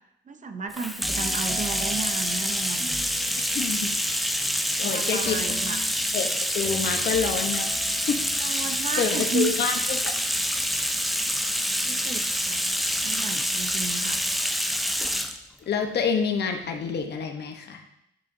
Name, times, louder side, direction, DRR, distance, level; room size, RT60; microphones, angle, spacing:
voice 1, 0.3-2.9 4.8-6.0 8.4-9.5 11.8-12.7 13.0-14.2, right 4 dB, 40° right, 8 dB, 0.7 m, -33 dB
Bathtub (filling or washing), 0.7-15.4, equal, ahead, 0.4 m, -27 dB
sound 1, 1.0-4.0 5.2-8.5, right 1 dB, 15° right, 0.9 m, -41 dB
voice 2, 3.5-3.9 4.8-5.4 6.1-7.7 8.1-8.2 9.0-10.1 15.7-17.8, left 6 dB, 55° left, 5 dB, 1.0 m, -27 dB
9.2 x 5.6 x 2.7 m, 0.79 s
cardioid pair, 90°, 20 cm